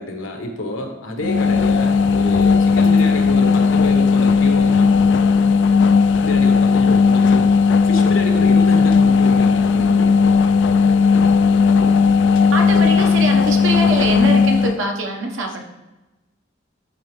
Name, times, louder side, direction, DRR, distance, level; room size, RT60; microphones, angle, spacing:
voice 1, 0.0-4.9 6.2-10.3, left 1 dB, 85° left, 3 dB, 1.2 m, -28 dB
sound 1, 1.2-14.8, left 5 dB, 65° left, 0.3 m, -15 dB
voice 2, 12.5-15.6, right 2 dB, 90° right, 2 dB, 1.2 m, -23 dB
11.5 x 4.0 x 3.2 m, 1.0 s
head